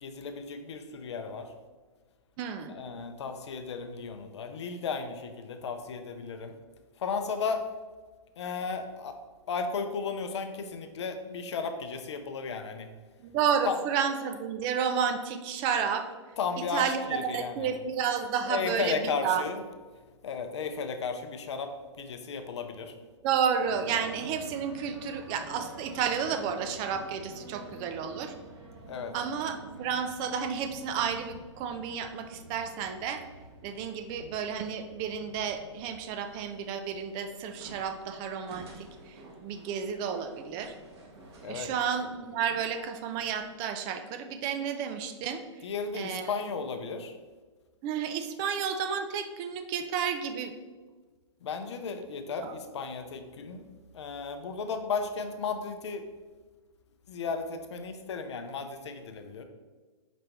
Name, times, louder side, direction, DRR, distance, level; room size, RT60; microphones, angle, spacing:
voice 1, 0.0-1.5 2.7-6.5 7.0-7.6 8.4-9.2 9.5-12.9 13.7-13.8 16.4-17.7 18.5-19.6 20.2-21.7 22.0-22.9 28.9-29.1 41.4-41.7 45.6-47.1 51.4-53.6 53.9-56.0 57.1-59.4, left 5 dB, 65° left, 7 dB, 0.6 m, -34 dB
voice 2, 2.4-2.7 13.2-16.1 16.6-19.4 23.2-28.3 29.1-33.2 33.6-40.7 41.4-45.4 45.9-46.3 47.8-50.5 52.3-52.5, right 7 dB, 30° right, 7 dB, 0.4 m, -31 dB
sound 1, 23.6-43.5, right 1 dB, 60° right, 1.2 m, -49 dB
5.0 x 2.8 x 3.4 m, 1.3 s
hypercardioid pair, 120°, 16 cm